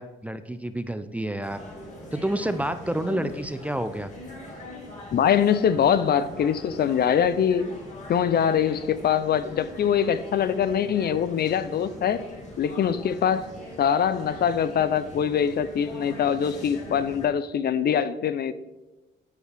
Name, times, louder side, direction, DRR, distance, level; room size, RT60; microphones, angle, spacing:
voice 1, 0.0-1.6 2.1-4.1, right 1 dB, 5° right, 10 dB, 0.5 m, -29 dB
sound 1, 1.4-17.3, left 1 dB, 35° left, 2.5 m, -42 dB
voice 2, 5.1-7.7 8.1-12.2 12.6-13.5 13.8-18.5, left 8 dB, 55° left, 14 dB, 0.5 m, -23 dB
13.0 x 4.6 x 3.4 m, 1.1 s
cardioid pair, 90°, 20 cm